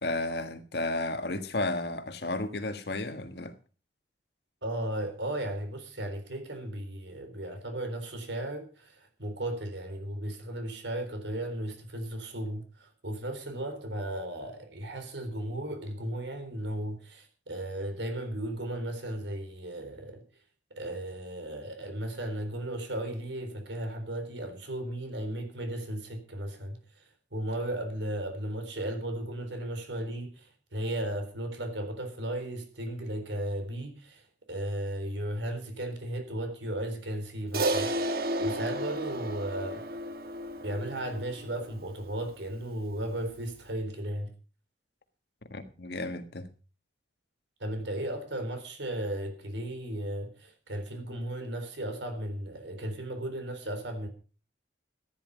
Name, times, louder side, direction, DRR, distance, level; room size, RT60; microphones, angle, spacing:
voice 1, 0.0-3.6 45.5-46.5, left 2 dB, 65° left, 1.6 m, -33 dB
voice 2, 4.6-20.2 20.7-37.9 38.4-39.9 40.6-44.3 47.6-54.1, right 1 dB, 85° right, 3.9 m, -35 dB
Crash cymbal, 37.5-42.1, right 1 dB, 55° right, 1.3 m, -32 dB
14.0 x 10.5 x 5.3 m
head